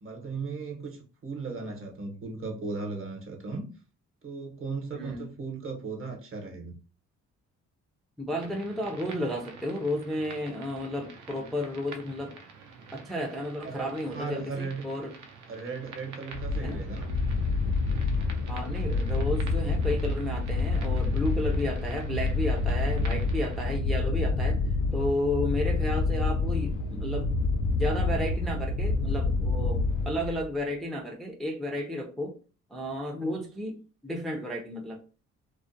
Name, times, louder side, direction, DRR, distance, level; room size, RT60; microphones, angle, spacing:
voice 1, 0.0-3.7 4.2-6.8 13.6-14.9 15.5-17.1, right 4 dB, 45° right, 0.8 m, -36 dB
voice 2, 4.9-5.2 8.2-12.3 12.9-15.1 16.6-16.8 18.5-24.6 24.9-27.3 27.7-32.3 32.7-35.0, left 1 dB, ahead, 0.3 m, -32 dB
sound 1, 8.4-23.7, right 4 dB, 75° right, 0.6 m, -48 dB
sound 2, 16.3-30.6, left 3 dB, 85° left, 0.5 m, -28 dB
2.4 x 2.0 x 2.5 m
cardioid pair, 90°, 30 cm